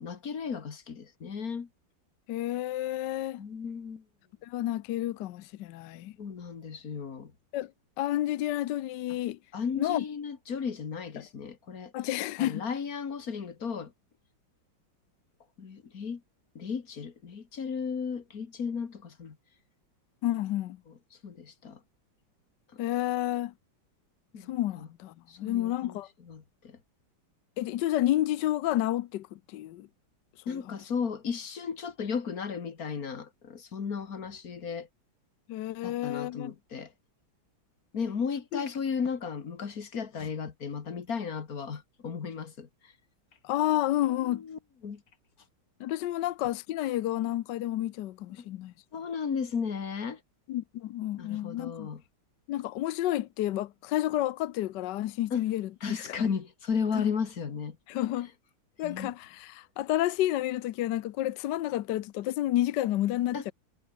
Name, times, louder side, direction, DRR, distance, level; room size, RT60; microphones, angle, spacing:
voice 1, 0.0-1.7 3.4-4.0 6.2-7.3 9.5-11.9 12.4-13.9 15.6-16.2 16.6-19.4 20.9-21.0 21.2-21.8 24.3-24.9 25.3-26.8 30.5-34.9 35.8-36.9 37.9-42.9 44.2-45.0 48.4-48.5 48.9-50.2 51.2-52.0 55.3-55.4 55.8-57.8 58.8-59.1 63.3-63.5, left 6 dB, 50° left, 2.2 m, -35 dB
voice 2, 2.3-3.4 4.4-6.1 7.5-7.7 8.0-9.4 9.7-10.0 11.2-11.3 11.9-12.6 20.2-20.8 22.8-23.5 24.5-26.1 27.6-29.9 35.5-36.5 38.5-38.6 43.4-44.4 45.8-48.7 50.5-51.9 52.5-56.2 57.0-57.1 57.9-58.3 58.8-63.5, left 14 dB, 70° left, 1.2 m, -30 dB
omnidirectional pair, 2.1 m